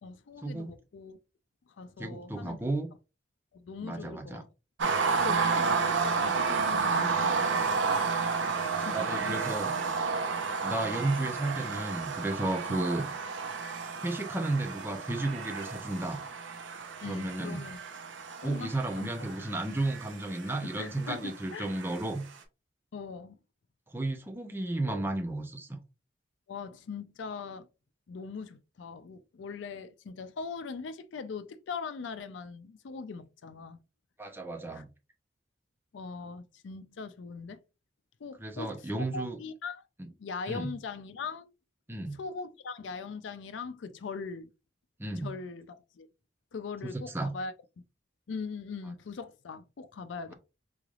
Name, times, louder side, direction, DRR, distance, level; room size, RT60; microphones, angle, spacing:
voice 1, 0.0-1.2 1.8-2.6 3.5-4.5 5.2-7.9 8.8-9.4 12.7-12.9 17.0-17.8 18.4-19.3 20.4-21.7 22.9-23.4 24.9-25.0 26.5-27.7 28.1-33.8 34.7-34.8 35.9-37.6 38.2-39.8 40.2-41.5 42.1-44.5 45.2-46.1 46.5-47.5 48.3-50.3, left 4 dB, 90° left, 0.4 m, -41 dB
voice 2, 2.0-2.9 3.8-4.4 8.9-9.7 10.6-13.0 14.0-16.2 17.0-17.6 18.4-22.2 23.9-25.8 34.2-34.9 38.4-39.4 40.0-40.1 40.5-40.7 41.9-42.2 45.0-45.3 46.8-47.3, right 2 dB, 10° right, 0.6 m, -33 dB
sound 1, 4.8-22.0, right 4 dB, 90° right, 0.6 m, -31 dB
3.8 x 3.2 x 2.4 m
head